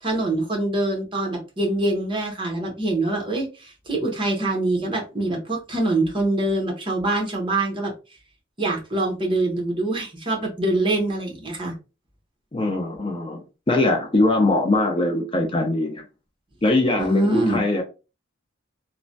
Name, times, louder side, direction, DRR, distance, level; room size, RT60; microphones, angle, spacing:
voice 1, 0.0-7.9 8.6-11.7 17.0-17.6, right 2 dB, 25° right, 0.8 m, -24 dB
voice 2, 12.5-16.0 16.6-17.8, left 2 dB, 25° left, 0.5 m, -22 dB
3.1 x 2.1 x 2.6 m
head